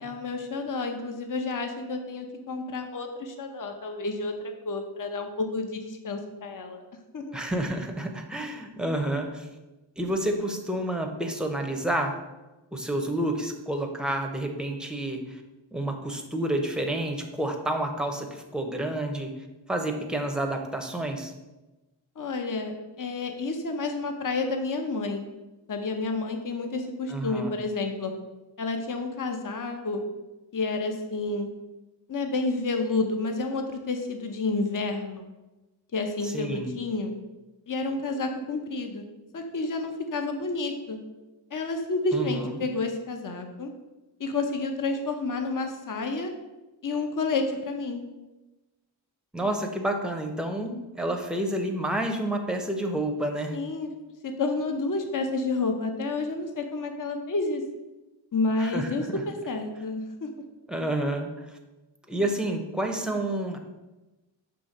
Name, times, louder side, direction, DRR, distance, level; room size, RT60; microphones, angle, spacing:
voice 1, 0.0-6.8 7.1-7.4 22.2-25.2 25.7-28.1 28.6-30.0 30.5-31.5 32.1-35.3 35.9-37.1 37.7-39.0 39.3-41.0 41.5-43.7 44.2-46.3 46.8-48.0 53.5-53.9 54.2-57.6 58.3-60.3, left 3 dB, 40° left, 5 dB, 0.7 m, -30 dB
voice 2, 7.3-9.5 10.0-12.2 12.7-15.4 15.7-19.3 19.7-21.3 27.1-27.5 36.2-36.7 42.1-42.5 49.3-53.6 58.6-59.2 60.7-61.3 62.1-63.6, right 1 dB, ahead, 4 dB, 0.7 m, -29 dB
6.7 x 3.2 x 5.3 m, 1.1 s
wide cardioid pair, 95°, 48 cm